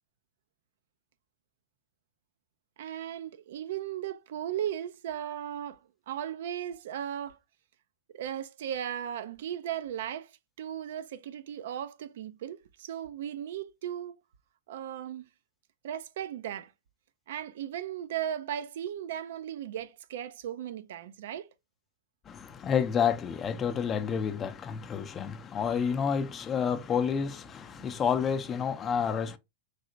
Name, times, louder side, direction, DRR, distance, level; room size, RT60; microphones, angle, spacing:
voice 1, 2.8-5.8 6.1-7.4 8.1-14.1 14.7-15.3 15.8-16.7 17.3-21.5, right 10 dB, 65° right, 0.3 m, -36 dB
voice 2, 22.3-29.4, left 7 dB, 30° left, 0.5 m, -29 dB
3.3 x 2.7 x 2.6 m
hypercardioid pair, 95°, 0 cm